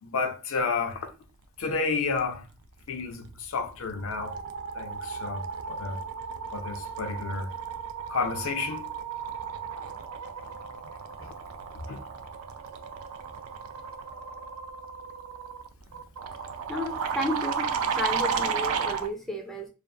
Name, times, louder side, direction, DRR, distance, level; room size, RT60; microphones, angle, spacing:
voice 1, 0.0-1.1 1.6-2.5 2.9-4.4 4.7-6.0 6.5-7.5 8.1-8.8 11.2-11.3 11.9-12.0, left 4 dB, 70° left, 0.5 m, -31 dB
sound 1, 3.3-3.6 3.9-19.1, right 6 dB, 80° right, 0.3 m, -34 dB
voice 2, 16.7-19.7, left 1 dB, ahead, 0.4 m, -33 dB
2.5 x 2.3 x 2.2 m
head